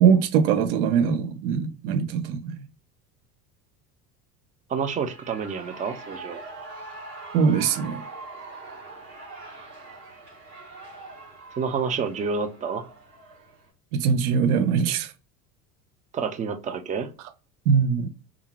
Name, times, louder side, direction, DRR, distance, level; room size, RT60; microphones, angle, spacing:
voice 1, 0.0-2.6 7.3-8.0 13.9-15.1 17.7-18.1, right 6 dB, 65° right, 0.7 m, -21 dB
voice 2, 4.7-6.4 11.6-12.9 16.1-17.1, right 5 dB, 20° right, 0.3 m, -28 dB
Shout / Cheering, 4.8-13.7, right 3 dB, 85° right, 1.5 m, -43 dB
2.4 x 2.4 x 2.9 m
hypercardioid pair, 75°, 47 cm